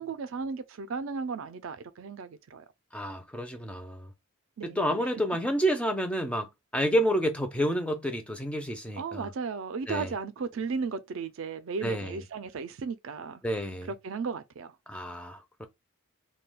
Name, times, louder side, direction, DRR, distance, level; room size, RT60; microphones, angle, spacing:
voice 1, 0.0-2.6 4.6-5.1 9.0-13.4 14.0-14.8, right 5 dB, 65° right, 0.4 m, -35 dB
voice 2, 2.9-4.1 4.6-9.3 9.9-10.1 11.8-12.2 13.4-13.9 14.9-15.7, equal, 5° left, 0.4 m, -29 dB
2.3 x 2.2 x 3.3 m
head